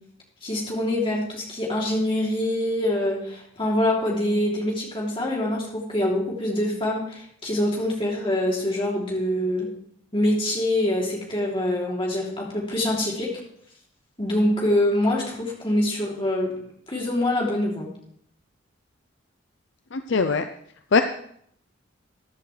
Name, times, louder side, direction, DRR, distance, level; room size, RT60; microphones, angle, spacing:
voice 1, 0.4-9.7 10.1-13.3 14.2-16.5 16.9-17.9, left 1 dB, 25° left, -3 dB, 3.1 m, -25 dB
voice 2, 19.9-20.5 20.9-21.0, left 4 dB, 60° left, 8 dB, 0.5 m, -20 dB
14.5 x 10.5 x 3.3 m, 0.66 s
head